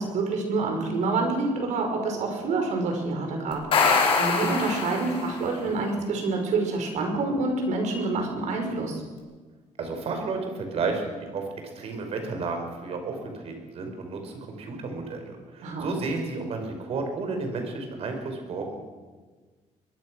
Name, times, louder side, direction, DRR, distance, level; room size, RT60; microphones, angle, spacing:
voice 1, 0.0-9.0 15.6-15.9, right 3 dB, 75° right, 3 dB, 5.8 m, -27 dB
sound 1, 3.5-5.5, left 4 dB, 50° left, 5.0 m, -24 dB
voice 2, 9.8-11.4 11.8-18.8, right 3 dB, 55° right, 4 dB, 5.3 m, -32 dB
22.5 x 22.5 x 6.4 m, 1.4 s
cardioid pair, 160°, 12 cm